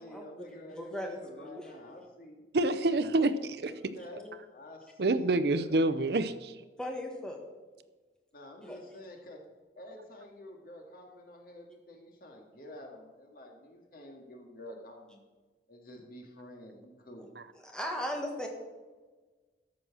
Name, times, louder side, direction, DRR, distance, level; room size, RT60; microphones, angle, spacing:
voice 1, 0.0-2.4 3.7-6.3 8.3-9.4 9.8-15.2 15.7-17.3, left 1 dB, 50° left, 2 dB, 2.1 m, -49 dB
voice 2, 0.7-1.7 3.7-3.8 6.8-7.4 8.6-8.8 17.6-18.5, left 1 dB, 5° left, 1 dB, 1.6 m, -37 dB
voice 3, 2.5-3.7 5.0-6.5, right 2 dB, 60° right, 13 dB, 0.6 m, -27 dB
13.5 x 6.3 x 6.1 m, 1.3 s
head